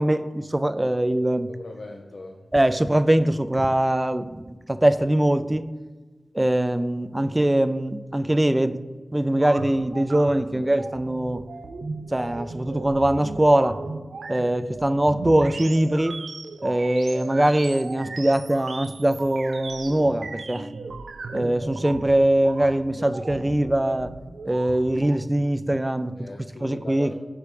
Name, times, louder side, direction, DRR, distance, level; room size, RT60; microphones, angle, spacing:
voice 1, 0.0-1.5 2.5-5.7 6.3-8.8 9.1-11.4 12.1-13.8 14.3-16.2 16.6-20.7 21.3-24.1 24.5-26.1 26.6-27.1, right 1 dB, 20° right, 12 dB, 0.4 m, -22 dB
voice 2, 1.5-2.5 19.6-19.8 26.1-27.1, left 2 dB, 75° left, 1 dB, 0.6 m, -40 dB
sound 1, 9.3-25.2, right 3 dB, 90° right, 0.4 m, -37 dB
5.7 x 4.9 x 4.8 m, 1.3 s
wide cardioid pair, 60°, 0 cm